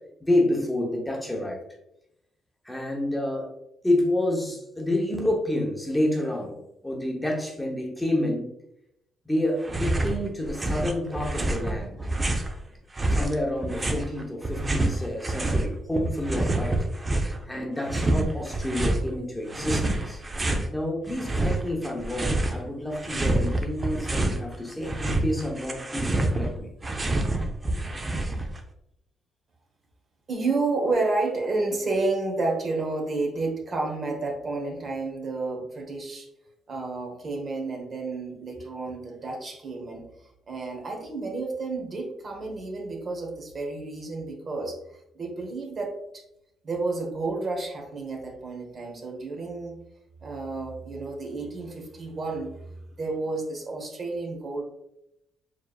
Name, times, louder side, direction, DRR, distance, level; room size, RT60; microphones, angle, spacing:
voice 1, 0.2-1.6 2.6-3.5 3.8-8.5 9.3-12.0 13.1-16.8 17.5-20.2 20.7-26.7, left 1 dB, 10° left, 0 dB, 0.8 m, -28 dB
sound 1, 9.6-10.2 10.4-12.5 13.0-15.7 15.9-17.4 17.8-19.0 19.5-20.7 21.1-22.6 22.9-24.4 24.7-28.6, right 2 dB, 25° right, 0.5 m, -27 dB
voice 2, 30.3-36.3 36.7-40.0 40.5-46.0 46.6-49.8 50.2-52.5 53.0-54.6, right 3 dB, 45° right, 1 dB, 1.1 m, -30 dB
4.6 x 3.2 x 2.3 m, 0.80 s
cardioid pair, 90°, 0 cm